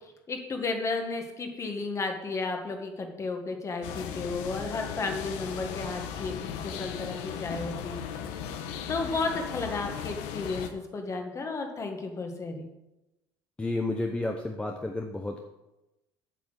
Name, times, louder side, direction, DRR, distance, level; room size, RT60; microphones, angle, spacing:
voice 1, 0.3-6.3 6.6-8.1 8.9-12.7, left 3 dB, 25° left, 4 dB, 1.7 m, -33 dB
sound 1, 3.8-10.7, left 8 dB, 90° left, 1.0 m, -37 dB
voice 2, 13.6-15.4, left 2 dB, 10° left, 3 dB, 0.8 m, -31 dB
8.4 x 6.0 x 8.0 m, 0.97 s
cardioid pair, 135°, 11 cm